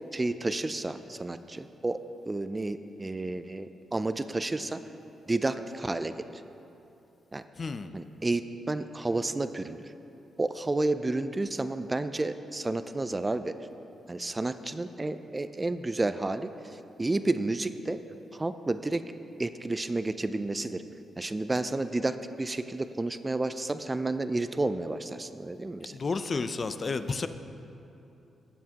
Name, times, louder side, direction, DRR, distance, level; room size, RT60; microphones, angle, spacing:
voice 1, 0.1-2.0 2.3-4.8 5.3-6.1 7.3-7.4 7.9-8.4 8.7-9.8 10.4-13.5 14.1-16.5 17.0-18.0 18.3-19.0 19.4-20.8 21.2-25.9, right 2 dB, 20° right, 11 dB, 0.4 m, -31 dB
voice 2, 7.6-7.9 25.9-27.3, left 4 dB, 40° left, 10 dB, 0.4 m, -31 dB
18.5 x 7.3 x 2.9 m, 2.9 s
cardioid pair, 90°, 0 cm